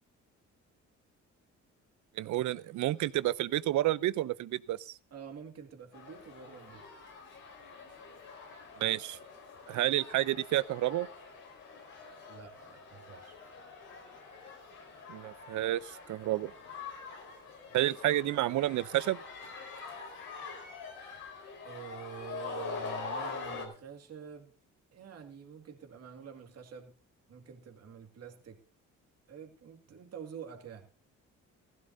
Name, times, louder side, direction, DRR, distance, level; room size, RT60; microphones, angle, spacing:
voice 1, 2.2-5.0 8.8-9.2 9.7-11.1 15.1-16.5 17.7-19.2, right 14 dB, 75° right, 0.6 m, -30 dB
voice 2, 5.1-6.8 12.3-13.4 21.6-24.5 24.9-26.9 27.3-28.6 29.3-30.9, right 7 dB, 55° right, 2.2 m, -47 dB
sound 1, 5.9-23.7, left 4 dB, 85° left, 4.7 m, -45 dB
16.0 x 15.0 x 2.7 m
cardioid pair, 90°, 30 cm